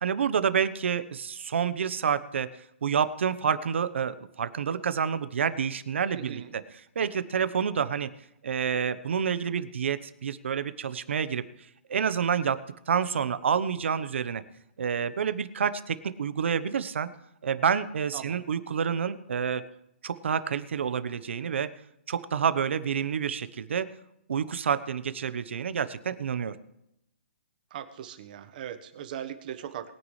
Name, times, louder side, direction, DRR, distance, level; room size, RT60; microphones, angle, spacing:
voice 1, 0.0-2.5 2.8-6.4 6.9-8.1 8.4-11.4 11.9-12.6 12.9-14.4 14.8-17.1 17.4-19.6 20.0-21.7 22.1-23.9 24.3-26.5, right 7 dB, 70° right, 13 dB, 1.0 m, -28 dB
voice 2, 6.1-6.5 18.1-18.4 27.7-29.9, right 10 dB, 45° right, 9 dB, 1.3 m, -39 dB
21.0 x 9.8 x 3.3 m, 0.82 s
hypercardioid pair, 155°, 7 cm